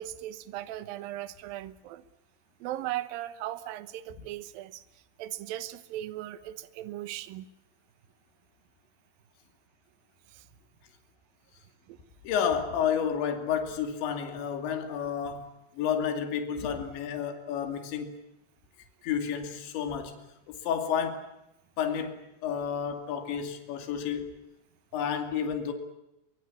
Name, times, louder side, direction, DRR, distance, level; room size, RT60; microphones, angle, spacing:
voice 1, 0.0-2.0 2.6-4.8 5.2-7.5 10.3-10.4 11.9-12.0, right 14 dB, 70° right, 14 dB, 2.4 m, -38 dB
voice 2, 12.2-15.5 15.7-18.1 19.0-20.1 20.5-21.2 21.8-24.3 24.9-25.7, left 7 dB, 75° left, 6 dB, 4.8 m, -31 dB
23.5 x 23.0 x 8.5 m, 0.90 s
omnidirectional pair, 5.3 m